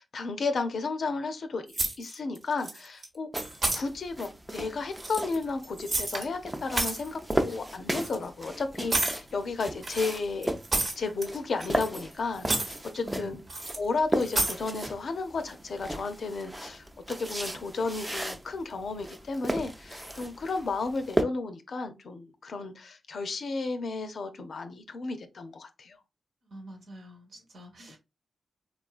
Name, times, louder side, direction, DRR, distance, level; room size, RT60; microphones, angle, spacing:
voice 1, 0.0-3.3 3.7-10.5 11.0-13.4 13.8-26.0, left 4 dB, 70° left, 0.5 m, -33 dB
sound 1, 1.7-2.4 2.6-3.1 3.4-3.8 4.9-6.3 6.5-7.1 7.9-8.2 8.9-9.2 9.8-11.3 11.6-12.1 12.4-12.8 13.5-13.8 14.2-14.6, right 2 dB, 55° right, 1.0 m, -30 dB
sound 2, 3.3-21.2, right 1 dB, 15° right, 0.5 m, -36 dB
voice 2, 12.9-13.4 26.4-28.0, right 1 dB, 75° right, 1.2 m, -46 dB
3.6 x 2.3 x 2.4 m
supercardioid pair, 45°, 0 cm